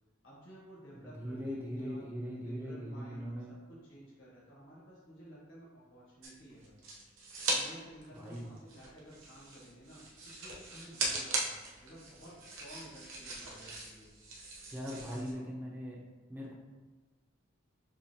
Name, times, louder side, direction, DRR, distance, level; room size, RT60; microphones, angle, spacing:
voice 1, 0.2-6.8 7.5-11.5 11.8-14.1 14.9-15.5, right 1 dB, 70° left, -7 dB, 1.4 m, -53 dB
voice 2, 1.0-3.6 8.2-8.4 14.7-16.0 16.3-16.5, equal, 10° right, -3 dB, 0.7 m, -40 dB
sound 1, 6.2-7.6 7.9-15.3, right 2 dB, 85° right, 0.9 m, -39 dB
6.9 x 2.5 x 2.9 m, 1.3 s
head